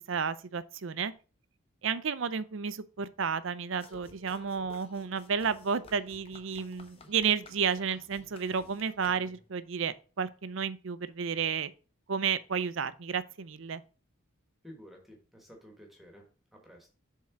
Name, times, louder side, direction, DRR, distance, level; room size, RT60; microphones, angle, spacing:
voice 1, 0.1-1.1 1.8-11.7 12.1-13.8, right 6 dB, 65° right, 0.5 m, -32 dB
sound 1, 3.8-9.6, left 2 dB, 25° left, 0.9 m, -54 dB
voice 2, 14.6-16.2 16.5-16.9, equal, ahead, 1.4 m, -52 dB
7.3 x 3.8 x 5.8 m
head